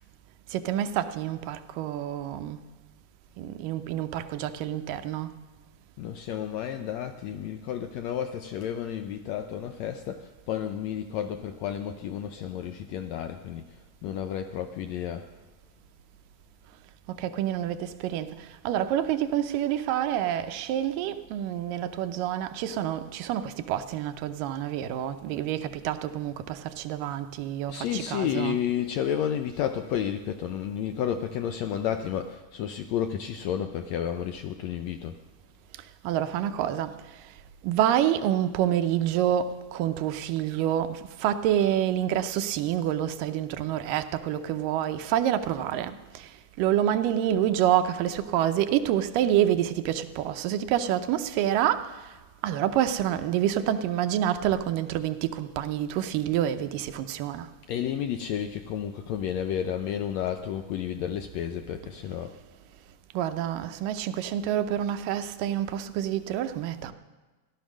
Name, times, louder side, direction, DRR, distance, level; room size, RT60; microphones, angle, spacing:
voice 1, 0.5-2.6 3.4-5.4 17.2-18.4 18.7-28.6 36.0-37.0 37.6-46.3 46.6-51.9 52.4-57.5 63.1-66.9, right 11 dB, 90° right, 10 dB, 2.4 m, -27 dB
voice 2, 6.0-13.7 14.0-15.3 27.7-35.2 57.7-62.3, left 9 dB, 80° left, 7 dB, 1.6 m, -31 dB
16.0 x 11.5 x 6.2 m, 1.2 s
omnidirectional pair, 3.8 m